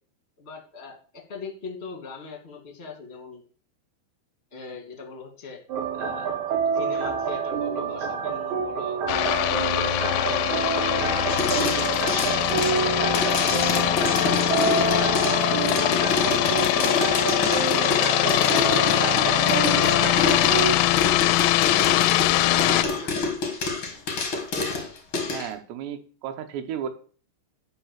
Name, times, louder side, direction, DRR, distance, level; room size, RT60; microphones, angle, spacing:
voice 1, 0.4-3.4 4.5-5.6 5.9-9.0 9.4-10.6 10.9-13.5 13.9-15.2 18.1-19.0 19.5-23.2, left 4 dB, 20° left, 2 dB, 1.8 m, -40 dB
sound 1, 5.7-20.8, right 6 dB, 70° right, 3.9 m, -28 dB
sound 2, 9.1-22.9, left 15 dB, 90° left, 2.8 m, -22 dB
sound 3, 11.3-25.5, left 4 dB, 50° left, 1.6 m, -28 dB
voice 2, 25.2-26.9, right 9 dB, 85° right, 6 dB, 3.2 m, -33 dB
11.0 x 4.9 x 7.4 m, 0.43 s
omnidirectional pair, 4.9 m